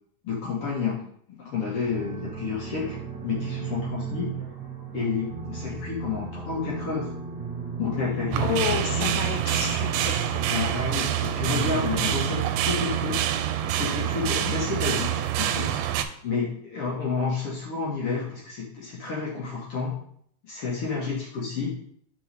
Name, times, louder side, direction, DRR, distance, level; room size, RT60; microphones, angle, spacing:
voice 1, 0.2-1.0 1.3-4.3 4.9-7.1 7.8-8.6 8.9-9.1 10.5-13.4 13.7-15.8 16.2-19.9 20.4-21.7, left 5 dB, 55° left, -5 dB, 1.8 m, -30 dB
sound 1, 1.8-12.0, right 5 dB, 70° right, 0.7 m, -36 dB
sound 2, 8.3-16.0, right 11 dB, 90° right, 2.1 m, -26 dB
voice 2, 8.4-10.5 21.0-21.2, left 7 dB, 80° left, 5 dB, 1.4 m, -31 dB
6.9 x 5.1 x 3.3 m, 0.64 s
omnidirectional pair, 3.7 m